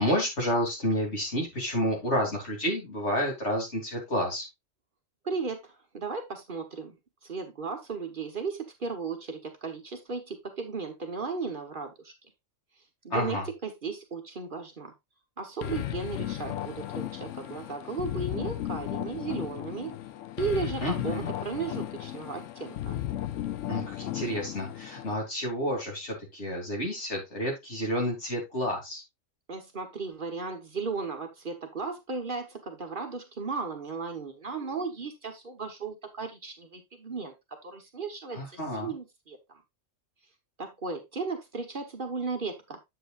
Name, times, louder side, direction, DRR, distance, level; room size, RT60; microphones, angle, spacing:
voice 1, 0.0-4.5 13.1-13.4 20.8-21.3 23.7-29.0 38.3-38.9, equal, 60° left, 0 dB, 3.2 m, -30 dB
voice 2, 5.2-6.9 7.2-12.1 13.0-14.9 15.4-19.9 20.4-23.0 29.5-37.3 37.6-39.6 40.6-42.8, right 4 dB, 45° right, 5 dB, 1.1 m, -35 dB
sound 1, 15.6-25.1, left 12 dB, 80° left, 0.9 m, -35 dB
7.9 x 7.6 x 2.4 m, 0.20 s
omnidirectional pair, 1.3 m